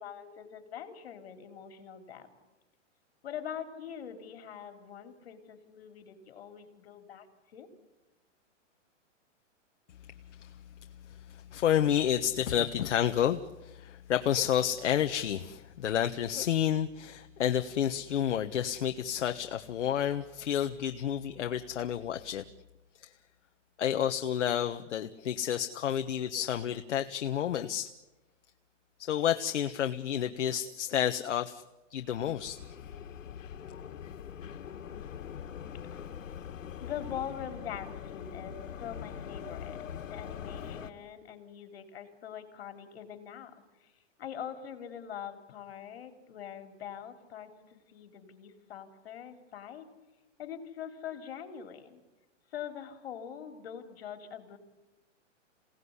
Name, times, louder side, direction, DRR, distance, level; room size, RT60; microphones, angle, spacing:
voice 1, 0.0-2.3 3.2-7.3 7.5-7.7 36.8-43.5 43.8-43.9 44.2-49.9 50.4-52.0 52.5-54.6, left 8 dB, 50° left, 8 dB, 4.0 m, -43 dB
voice 2, 11.0-22.4 23.0-23.1 23.8-27.9 29.0-31.6 31.9-32.6, left 10 dB, 65° left, 7 dB, 1.4 m, -30 dB
sound 1, 32.0-40.9, left 8 dB, 90° left, 2.1 m, -43 dB
28.0 x 18.5 x 9.8 m, 1.1 s
hypercardioid pair, 170°, 37 cm